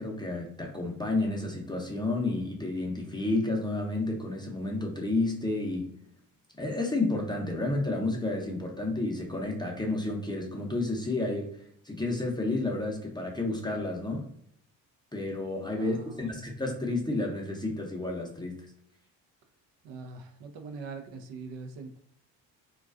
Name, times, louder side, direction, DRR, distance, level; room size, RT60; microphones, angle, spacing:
voice 1, 0.0-5.9 6.6-11.6 11.8-14.3 15.1-18.6, left 2 dB, 10° left, 0 dB, 0.6 m, -31 dB
voice 2, 15.8-16.3 19.8-22.0, right 4 dB, 65° right, 5 dB, 0.5 m, -43 dB
2.3 x 2.3 x 2.3 m, 0.68 s
hypercardioid pair, 55°, 47 cm